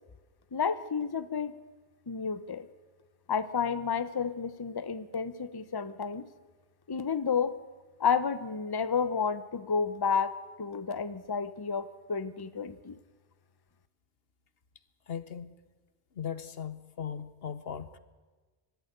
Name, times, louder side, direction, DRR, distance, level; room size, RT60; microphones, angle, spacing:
voice 1, 0.5-1.5 2.1-2.7 3.3-6.3 6.9-7.5 8.0-13.0, left 6 dB, 25° left, 14 dB, 0.7 m, -31 dB
voice 2, 15.1-15.5 16.1-18.0, left 8 dB, 65° left, 15 dB, 1.2 m, -38 dB
23.5 x 13.0 x 9.4 m, 1.3 s
omnidirectional pair, 1.1 m